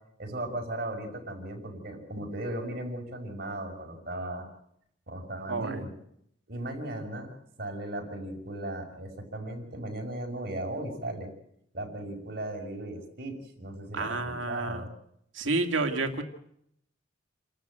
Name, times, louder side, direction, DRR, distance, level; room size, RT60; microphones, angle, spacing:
voice 1, 0.2-4.5 5.1-5.9 6.5-7.3 7.6-11.3 11.7-14.9, right 1 dB, 55° right, 2 dB, 5.6 m, -37 dB
voice 2, 5.5-5.8 13.9-14.9 15.3-16.2, right 3 dB, 85° right, 5 dB, 2.4 m, -30 dB
28.5 x 13.5 x 9.1 m, 0.76 s
head